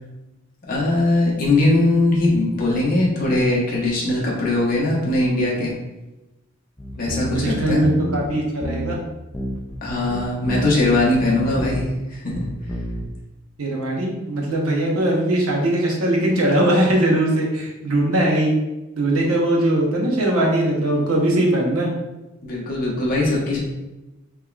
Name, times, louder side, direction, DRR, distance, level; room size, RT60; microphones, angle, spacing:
voice 1, 0.7-5.7 6.9-7.8 9.8-12.4 22.4-23.6, left 2 dB, 40° left, -4 dB, 0.8 m, -20 dB
sound 1, 6.8-8.3 8.6-9.0 9.3-9.8 10.1-12.0 12.3-13.1, equal, 10° left, 0.3 m, -29 dB
voice 2, 7.3-9.0 13.6-18.6 18.9-21.9, right 1 dB, 75° right, -1 dB, 0.8 m, -20 dB
3.6 x 3.0 x 2.3 m, 1.0 s
head